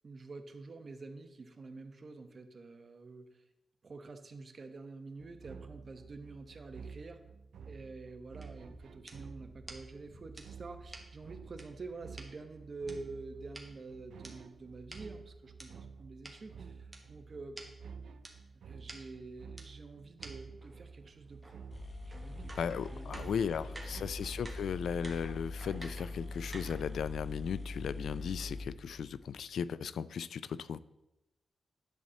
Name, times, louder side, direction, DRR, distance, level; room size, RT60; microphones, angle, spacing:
voice 1, 0.0-3.4 3.8-7.2 7.7-17.6 18.6-21.6 22.1-23.4 23.9-24.1, right 3 dB, 40° right, 7 dB, 1.0 m, -48 dB
sound 1, 5.2-25.0, right 5 dB, 85° right, 0.4 m, -51 dB
sound 2, 8.4-12.3 12.9-15.7 16.2-16.3 16.9-17.0 17.3-17.4 17.6-17.7 18.2-18.3 18.9-19.0 19.6-19.7 20.2-20.3 20.6-27.0, right 1 dB, 15° right, 1.4 m, -52 dB
Coffee machine, 21.4-21.5 21.7-29.5, left 2 dB, 30° left, 0.7 m, -43 dB
voice 2, 22.6-30.8, left 7 dB, 90° left, 17 dB, 0.3 m, -36 dB
10.5 x 4.2 x 7.5 m, 0.96 s
wide cardioid pair, 145°, 0 cm